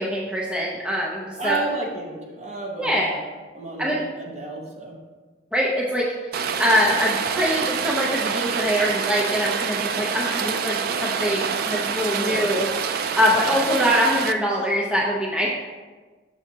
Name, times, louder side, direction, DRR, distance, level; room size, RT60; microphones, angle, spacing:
voice 1, 0.0-1.6 2.8-3.1 3.8-4.0 5.5-6.1 6.4-12.7 13.2-15.5, equal, 5° right, -4 dB, 0.6 m, -23 dB
voice 2, 1.4-3.2 3.5-4.9 12.1-12.5 13.3-13.5, right 3 dB, 40° right, -1 dB, 1.0 m, -32 dB
Rain, 6.3-14.3, right 6 dB, 55° right, 0.3 m, -26 dB
6.0 x 5.5 x 2.8 m, 1.3 s
head